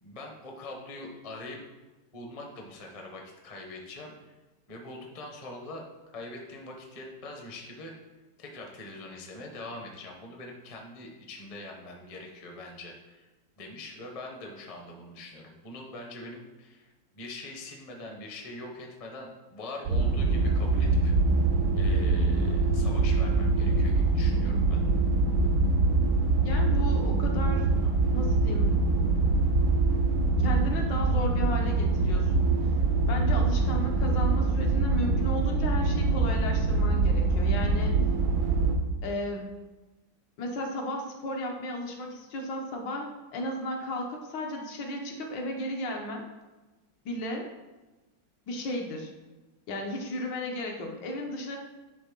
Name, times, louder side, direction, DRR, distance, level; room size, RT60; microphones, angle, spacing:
voice 1, 0.0-1.6 2.1-4.1 4.7-5.8 6.1-8.0 8.4-13.3 13.6-16.9 17.1-21.1 21.8-24.8, left 2 dB, 30° left, 1 dB, 0.7 m, -43 dB
sound 1, 19.9-38.8, right 3 dB, 90° right, 1.6 m, -24 dB
voice 2, 26.4-28.8 30.4-32.6 33.1-38.0 39.0-39.5 40.4-46.2 47.0-47.5 48.5-49.1 49.7-51.6, left 1 dB, 70° left, 2 dB, 1.6 m, -34 dB
10.5 x 3.5 x 3.7 m, 1.1 s
omnidirectional pair, 2.1 m